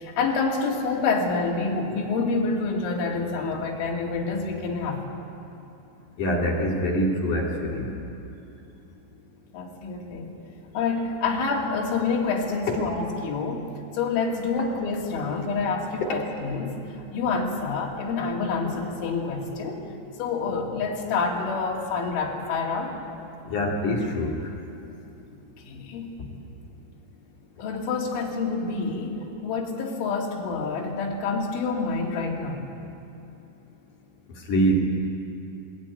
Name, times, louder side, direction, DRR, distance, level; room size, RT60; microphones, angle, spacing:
voice 1, 0.0-5.0 9.5-10.3 10.7-13.7 13.9-16.8 17.1-19.9 20.2-23.0 25.6-26.3 27.6-32.7, left 4 dB, 70° left, -1 dB, 4.8 m, -27 dB
voice 2, 6.2-7.9 23.5-24.3 34.5-34.9, equal, 50° left, -1 dB, 3.1 m, -24 dB
22.0 x 19.0 x 9.5 m, 2.9 s
omnidirectional pair, 5.9 m